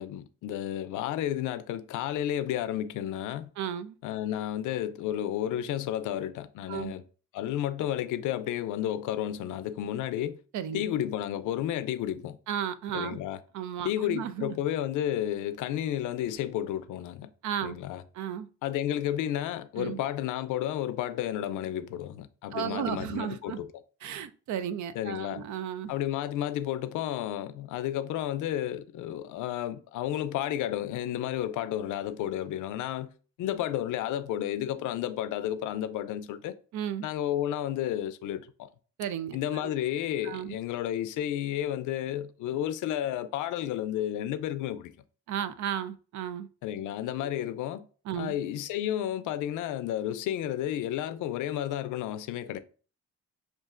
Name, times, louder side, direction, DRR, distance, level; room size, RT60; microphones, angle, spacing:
voice 1, 0.0-3.5 4.0-7.0 7.3-10.4 10.7-12.4 12.9-13.4 13.8-17.3 17.6-18.0 18.6-23.7 24.9-25.4 25.9-33.1 33.4-36.6 37.0-38.7 39.3-44.9 46.6-47.9 48.2-52.6, left 11 dB, 80° left, 0.5 m, -32 dB
voice 2, 3.6-4.0 6.7-6.9 10.5-10.8 12.5-13.2 13.5-14.6 17.4-17.8 18.1-18.5 19.8-20.0 22.5-23.6 24.0-25.9 36.7-37.1 39.0-39.4 40.2-40.6 45.3-46.5 48.1-48.3, right 9 dB, 70° right, 0.5 m, -34 dB
6.4 x 2.5 x 2.4 m
cardioid pair, 90°, 30 cm